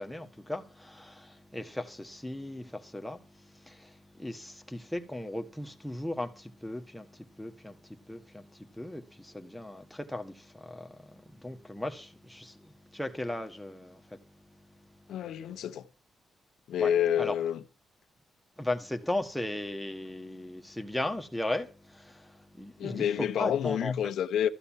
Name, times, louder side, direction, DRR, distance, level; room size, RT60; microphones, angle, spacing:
voice 1, 0.0-14.2 15.0-15.1 16.8-17.4 18.6-23.9, left 1 dB, 5° left, 1.6 m, -37 dB
voice 2, 15.1-15.9 16.7-17.6 22.8-24.5, left 9 dB, 80° left, 1.0 m, -28 dB
14.0 x 6.9 x 7.4 m
cardioid pair, 140°, 0 cm